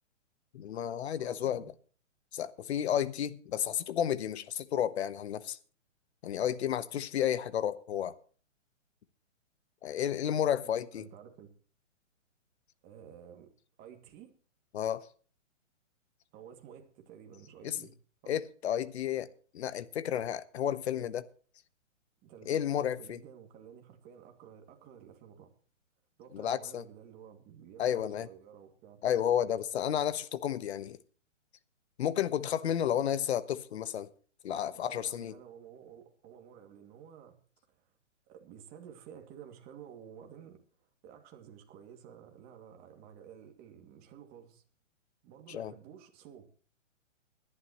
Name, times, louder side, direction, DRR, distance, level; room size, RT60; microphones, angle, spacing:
voice 1, 0.5-1.6 2.3-5.6 6.2-8.1 9.8-11.0 14.7-15.1 17.6-17.8 18.3-19.3 19.5-21.2 22.5-23.2 26.3-26.8 27.8-28.3 29.0-31.0 32.0-34.1 34.4-35.3 45.5-45.7, left 10 dB, 55° left, 1.2 m, -32 dB
voice 2, 1.1-1.7 10.6-11.5 12.8-13.5 13.8-14.3 16.3-17.9 18.2-18.3 20.7-21.1 22.2-25.5 26.2-29.0 34.7-37.4 37.7-37.9 38.3-44.6 45.2-46.5, right 8 dB, 25° right, 2.4 m, -52 dB
21.0 x 11.5 x 3.1 m
hypercardioid pair, 145°, 38 cm